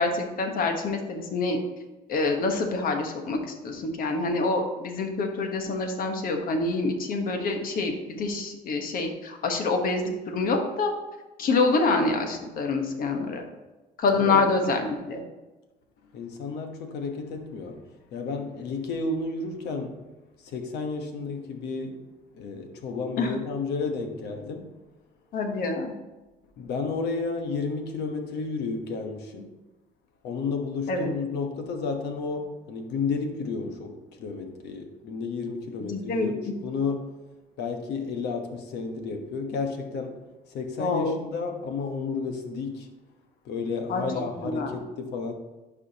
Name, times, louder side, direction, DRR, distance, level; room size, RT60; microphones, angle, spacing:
voice 1, 0.0-1.6 2.1-10.9 11.4-13.4 14.0-15.2 23.2-23.3 25.3-25.9 30.9-31.1 35.8-36.5 40.8-41.2 43.9-44.7, left 3 dB, 60° left, 4 dB, 1.3 m, -26 dB
voice 2, 14.1-14.4 16.0-20.1 20.4-22.1 22.3-24.7 26.6-29.5 30.2-37.1 37.6-40.2 40.5-42.9 43.4-45.3, left 4 dB, 80° left, 5 dB, 1.1 m, -32 dB
11.5 x 4.9 x 2.9 m, 1.1 s
cardioid pair, 110°, 17 cm